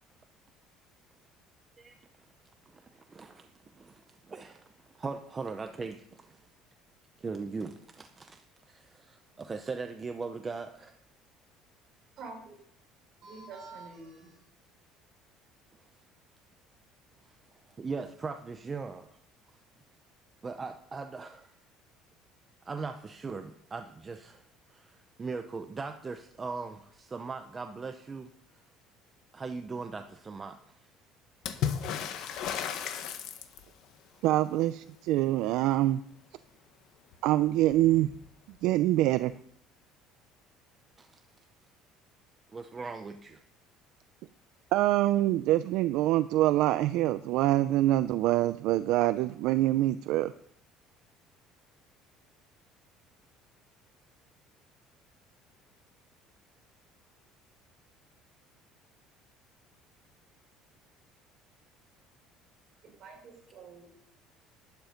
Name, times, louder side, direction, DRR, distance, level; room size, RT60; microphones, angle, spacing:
voice 1, 2.7-3.5 3.8-4.7 4.9-6.4 7.2-8.4 8.7-11.0 17.8-19.1 20.4-21.5 22.7-24.4 24.7-28.3 29.3-30.8 41.0-41.1 42.5-43.4, right 4 dB, 20° right, 7 dB, 0.6 m, -39 dB
voice 2, 12.2-12.5 13.2-14.4 62.8-63.9, right 4 dB, 45° right, -1 dB, 5.5 m, -46 dB
Water / Splash splatter, 31.4-33.8 37.1-37.2 37.5-38.3 39.3-39.4, left 8 dB, 55° left, 1.4 m, -34 dB
voice 3, 34.2-36.0 37.2-38.1 38.6-39.3 44.7-50.3, right 15 dB, 65° right, 13 dB, 0.4 m, -25 dB
11.5 x 10.5 x 5.2 m, 0.68 s
cardioid pair, 165°, 0 cm